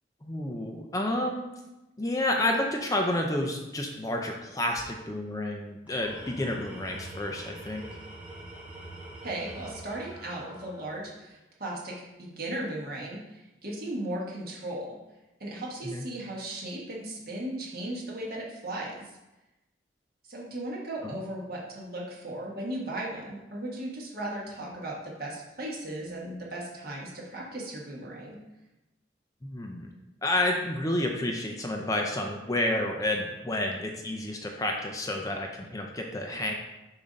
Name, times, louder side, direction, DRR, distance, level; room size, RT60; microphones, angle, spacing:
voice 1, 0.2-1.5 2.0-8.0 15.8-16.0 21.0-21.2 29.4-29.9 30.2-36.5, left 1 dB, 20° left, 2 dB, 0.5 m, -30 dB
Tools, 5.8-11.2, right 1 dB, 10° right, 0.9 m, -45 dB
voice 2, 9.2-15.0 15.4-19.2 20.3-28.4, right 1 dB, 55° right, -4 dB, 1.5 m, -36 dB
6.9 x 2.7 x 5.2 m, 0.98 s
head